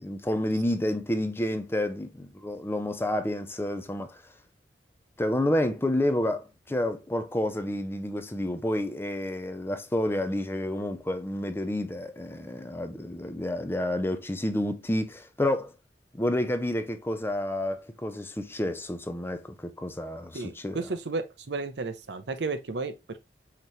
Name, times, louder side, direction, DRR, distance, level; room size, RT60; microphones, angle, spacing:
voice 1, 0.0-4.2 5.2-15.7 16.1-20.9, left 1 dB, 15° left, 0.5 m, -29 dB
voice 2, 20.3-23.2, right 3 dB, 75° right, 0.7 m, -33 dB
5.8 x 3.0 x 3.0 m
head